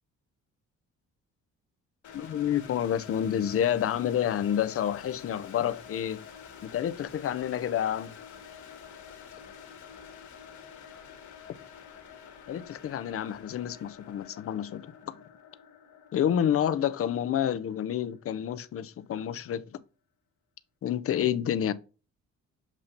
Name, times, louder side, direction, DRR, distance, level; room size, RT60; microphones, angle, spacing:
sound 1, 2.0-18.9, left 7 dB, 70° left, 1.5 m, -48 dB
voice 1, 2.1-6.2 6.6-8.2 12.5-15.2 16.1-19.8 20.8-21.7, left 10 dB, 50° left, 0.6 m, -29 dB
7.4 x 2.7 x 5.1 m
cardioid pair, 90°, 30 cm